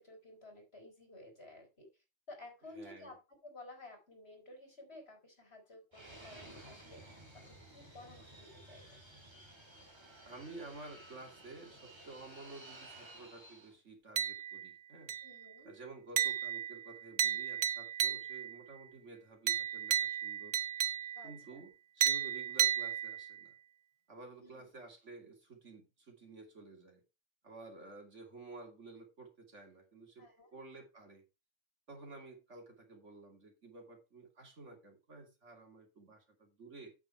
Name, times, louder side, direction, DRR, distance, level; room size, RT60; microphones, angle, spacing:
voice 1, 0.0-9.0 15.2-15.7 21.2-21.6 24.4-24.7 30.2-30.5, left 2 dB, 60° left, 4.3 m, -54 dB
voice 2, 2.8-3.1 10.2-15.1 15.6-20.6 21.2-23.5 24.1-27.0 27.4-30.2 30.5-31.2 31.9-36.9, right 3 dB, 85° right, 3.0 m, -52 dB
Fixed-wing aircraft airplane, 5.9-13.7, right 1 dB, 25° right, 2.3 m, -55 dB
sound 1, 14.2-14.7 15.1-15.5 16.2-18.6 19.5-21.4 22.0-23.4, right 9 dB, 55° right, 0.7 m, -34 dB
8.4 x 7.6 x 4.4 m
omnidirectional pair, 1.2 m